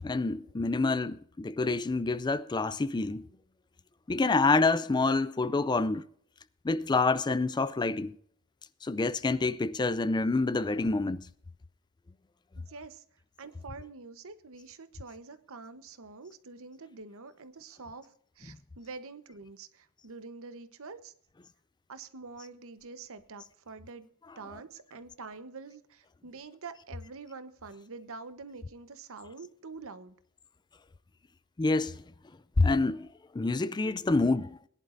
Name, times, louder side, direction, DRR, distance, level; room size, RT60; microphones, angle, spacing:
voice 1, 0.0-3.3 4.1-6.1 6.6-8.1 8.8-11.2 18.5-18.6 31.6-32.0 32.6-33.1 33.3-34.6, left 3 dB, 20° left, 0.4 m, -27 dB
voice 2, 12.6-13.0 13.4-18.1 18.4-21.1 21.9-24.1 24.4-30.1, right 4 dB, 65° right, 1.0 m, -46 dB
21.5 x 11.0 x 2.6 m
head